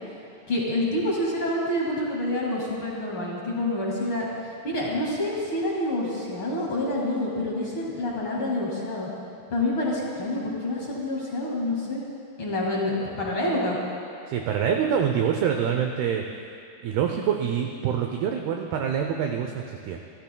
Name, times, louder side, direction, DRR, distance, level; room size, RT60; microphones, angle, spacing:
voice 1, 0.5-9.1 9.5-12.0 12.4-13.8, left 1 dB, 50° left, -4 dB, 1.5 m, -27 dB
voice 2, 14.3-16.2 16.8-20.0, right 8 dB, 90° right, 3 dB, 2.2 m, -25 dB
29.5 x 14.0 x 2.2 m, 2.6 s
omnidirectional pair, 5.3 m